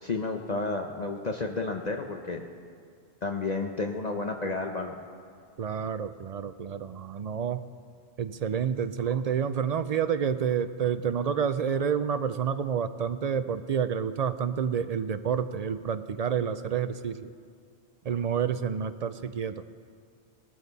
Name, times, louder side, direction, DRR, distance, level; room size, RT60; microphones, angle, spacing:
voice 1, 0.0-2.4 3.2-4.9, left 3 dB, 45° left, 3 dB, 0.8 m, -31 dB
voice 2, 5.6-7.6 8.2-17.3 18.0-19.6, right 7 dB, 60° right, 11 dB, 0.4 m, -29 dB
19.0 x 13.5 x 4.0 m, 2.2 s
omnidirectional pair, 1.2 m